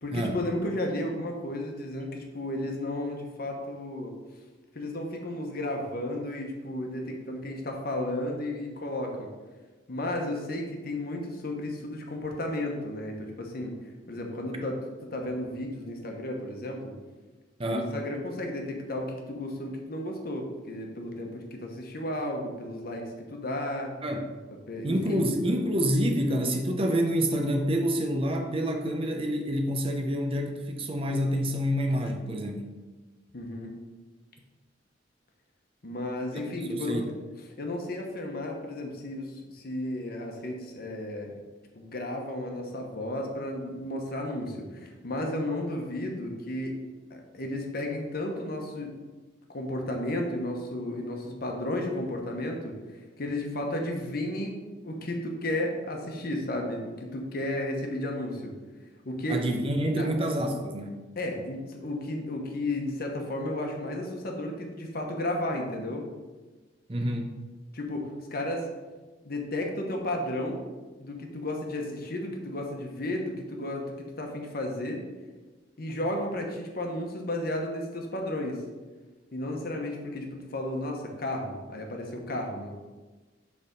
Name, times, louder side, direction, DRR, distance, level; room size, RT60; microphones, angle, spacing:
voice 1, 0.0-4.2 4.7-9.3 9.9-13.7 14.1-14.8 15.1-16.9 17.6-23.9 24.7-25.3 33.3-33.8 35.8-37.1 37.6-41.3 41.7-46.8 47.1-48.9 49.5-58.5 59.0-59.4 59.9-60.1 61.2-66.1 67.7-68.7 69.2-70.7 71.0-75.0 75.8-78.6 79.3-82.8, left 1 dB, 55° left, 2 dB, 1.0 m, -33 dB
voice 2, 17.6-17.9 24.0-24.3 24.8-32.7 36.3-36.4 36.7-37.1 59.3-61.0 66.9-67.3, equal, 30° right, 4 dB, 0.6 m, -27 dB
6.8 x 3.5 x 5.1 m, 1.3 s
head